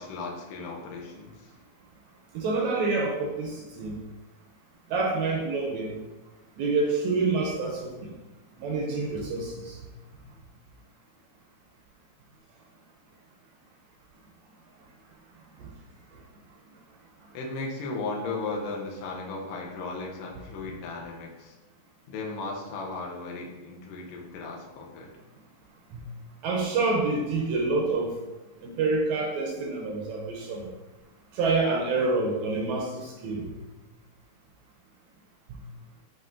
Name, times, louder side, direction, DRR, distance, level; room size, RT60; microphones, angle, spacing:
voice 1, 0.0-1.5 17.3-21.6 22.1-25.1, left 3 dB, 80° left, -2 dB, 1.3 m, -36 dB
voice 2, 2.4-3.5 3.8-3.9 4.9-5.9 6.6-7.9 8.6-9.5 26.4-28.2 28.6-30.7 31.4-33.4, right 3 dB, 80° right, 0 dB, 1.7 m, -27 dB
7.4 x 2.5 x 2.5 m, 1.1 s
omnidirectional pair, 3.4 m